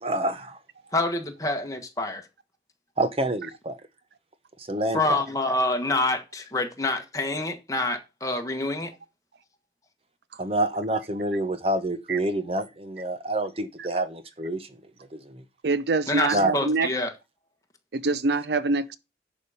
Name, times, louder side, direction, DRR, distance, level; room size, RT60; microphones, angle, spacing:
voice 1, 0.0-0.6 3.0-3.8 4.7-5.2 10.4-14.7 15.1-15.4 16.3-16.5, right 1 dB, 35° right, 0.9 m, -27 dB
voice 2, 0.9-2.2 4.9-8.9 16.1-17.1, left 2 dB, 20° left, 1.4 m, -27 dB
voice 3, 15.6-16.9 17.9-19.0, right 3 dB, 75° right, 0.6 m, -25 dB
10.5 x 5.0 x 5.7 m
head